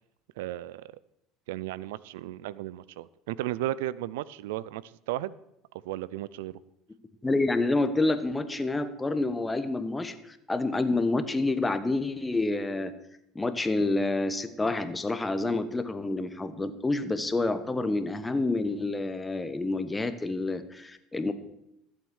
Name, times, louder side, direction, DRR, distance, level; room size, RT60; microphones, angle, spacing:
voice 1, 0.4-0.9 1.5-5.4 5.9-6.5, right 14 dB, 85° right, 20 dB, 0.4 m, -34 dB
voice 2, 7.2-12.9 13.3-21.3, left 2 dB, 15° left, 11 dB, 1.2 m, -28 dB
14.0 x 8.0 x 6.3 m, 0.82 s
supercardioid pair, 95°, 0 cm